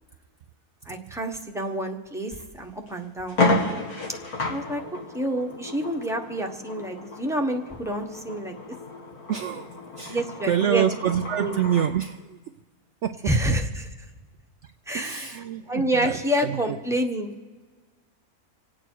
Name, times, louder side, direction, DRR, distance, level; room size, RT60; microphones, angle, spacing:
voice 1, 0.9-3.4 4.5-4.8 5.1-8.5 10.1-10.8 11.4-11.6 13.3-13.9 14.9-15.3 15.7-17.3, right 1 dB, ahead, 3 dB, 0.9 m, -28 dB
sound 1, 2.3-2.4 2.9-3.0 3.3-11.9, left 2 dB, 75° left, 2.4 m, -31 dB
voice 2, 9.3-12.4 13.0-13.3 14.6-16.8, right 9 dB, 65° right, 7 dB, 0.7 m, -27 dB
26.5 x 8.9 x 4.6 m, 1.3 s
omnidirectional pair, 1.6 m